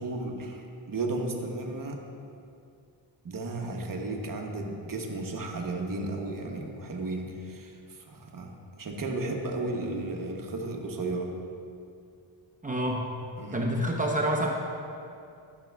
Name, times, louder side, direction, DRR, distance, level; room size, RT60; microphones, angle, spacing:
voice 1, 0.0-2.0 3.2-11.3 13.4-13.6, right 2 dB, 45° right, 2 dB, 0.9 m, -34 dB
voice 2, 12.6-13.1 13.5-14.5, right 1 dB, 15° right, -2 dB, 0.7 m, -27 dB
11.5 x 6.1 x 2.3 m, 2.5 s
cardioid pair, 100°, 48 cm